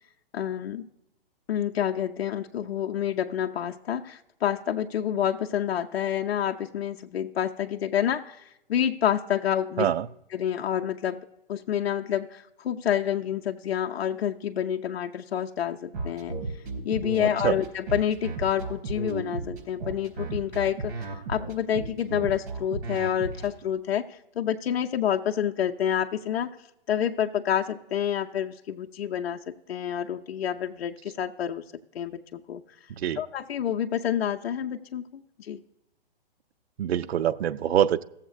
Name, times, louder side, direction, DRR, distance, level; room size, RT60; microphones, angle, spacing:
voice 1, 0.3-0.9 1.5-9.9 10.3-16.4 16.8-26.6 26.9-31.6 31.9-32.6 33.2-35.6, left 9 dB, 85° left, 4 dB, 0.6 m, -28 dB
sound 1, 15.9-23.5, right 3 dB, 55° right, 3.8 m, -33 dB
voice 2, 17.2-17.6 33.0-33.2 36.8-38.0, right 10 dB, 85° right, 14 dB, 0.5 m, -25 dB
16.0 x 7.3 x 2.4 m, 0.86 s
hypercardioid pair, 150°, 30 cm